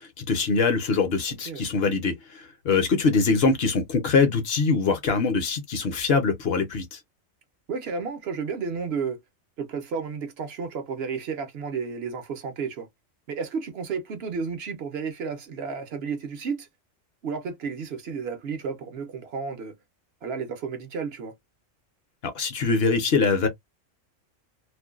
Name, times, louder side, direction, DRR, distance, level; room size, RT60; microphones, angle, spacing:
voice 1, 0.0-7.0 22.2-23.5, left 4 dB, 55° left, 0.8 m, -23 dB
voice 2, 1.3-1.7 7.7-9.2 9.6-12.9 13.3-16.7 17.2-19.8 20.2-21.3, right 5 dB, 60° right, 0.8 m, -32 dB
2.5 x 2.1 x 2.3 m
omnidirectional pair, 1.4 m